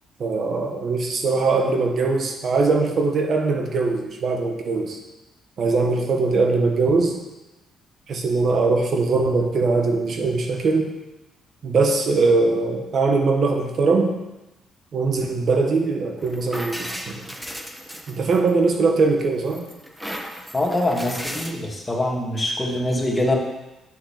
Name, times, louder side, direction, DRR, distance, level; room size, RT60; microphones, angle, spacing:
voice 1, 0.2-5.0 5.6-7.2 8.1-10.9 11.6-14.2 14.9-17.1 18.1-19.7, right 3 dB, 55° right, 2 dB, 1.5 m, -21 dB
sound 1, 16.2-18.7 19.2-21.5, equal, 5° right, 1.2 m, -35 dB
voice 2, 20.5-23.3, left 1 dB, 20° left, -1 dB, 2.4 m, -24 dB
9.3 x 6.3 x 6.8 m, 1.0 s
cardioid pair, 90°, 0 cm